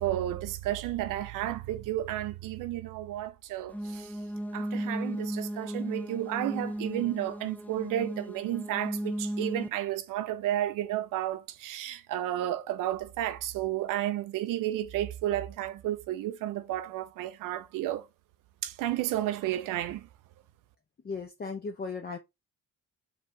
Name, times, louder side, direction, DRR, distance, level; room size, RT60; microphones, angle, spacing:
voice 1, 0.0-4.2 4.5-18.1 18.6-20.1, right 13 dB, 65° right, 0.6 m, -32 dB
sound 1, 3.7-9.7, right 1 dB, 5° left, 0.5 m, -35 dB
voice 2, 21.1-22.2, left 4 dB, 30° left, 0.8 m, -36 dB
4.7 x 2.5 x 3.9 m
supercardioid pair, 70°, 34 cm